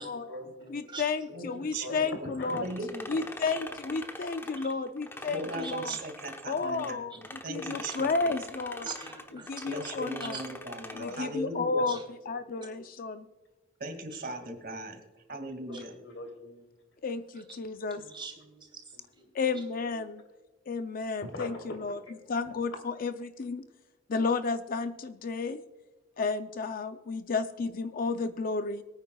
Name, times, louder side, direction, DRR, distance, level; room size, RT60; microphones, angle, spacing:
voice 1, 0.0-0.8 1.3-2.6 3.4-3.6 5.1-5.9 7.5-8.2 10.5-10.6 11.0-11.3 12.3-12.8 15.7-16.7 19.4-19.5 21.2-21.5 21.9-22.2 22.5-22.6, left 2 dB, 80° left, 4 dB, 3.0 m, -44 dB
voice 2, 0.7-2.7 3.1-5.9 6.4-7.2 7.5-8.9 9.5-10.4 10.9-12.0 12.3-13.3 17.0-18.0 19.3-20.2 20.7-22.0 22.3-23.6 24.1-25.6 26.2-28.8, left 4 dB, 50° left, 9 dB, 0.5 m, -32 dB
voice 3, 1.3-3.3 5.3-8.3 9.7-11.9 13.8-15.9, right 1 dB, 55° right, 6 dB, 2.2 m, -39 dB
sound 1, 2.4-6.9 7.2-11.3, left 1 dB, 10° left, 0.9 m, -43 dB
voice 4, 5.2-6.0 7.1-7.2 7.5-7.7 8.8-10.0 10.3-10.5 11.9-12.0 14.1-14.2 15.7-15.8 17.3-17.4 17.9-19.0 19.5-19.6 19.9-20.1, right 4 dB, 25° right, 3 dB, 2.9 m, -44 dB
23.5 x 9.3 x 2.3 m, 1.2 s
head